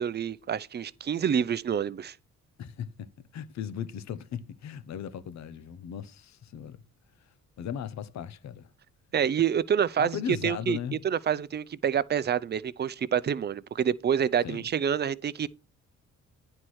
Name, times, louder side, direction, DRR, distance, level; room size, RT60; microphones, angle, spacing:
voice 1, 0.0-2.1 9.1-10.2 10.4-10.8 11.0-15.5, right 8 dB, 35° right, 0.5 m, -27 dB
voice 2, 2.6-6.8 7.6-8.7 10.0-11.0 14.4-14.7, left 9 dB, 65° left, 0.9 m, -37 dB
9.7 x 4.4 x 6.2 m
cardioid pair, 90°, 30 cm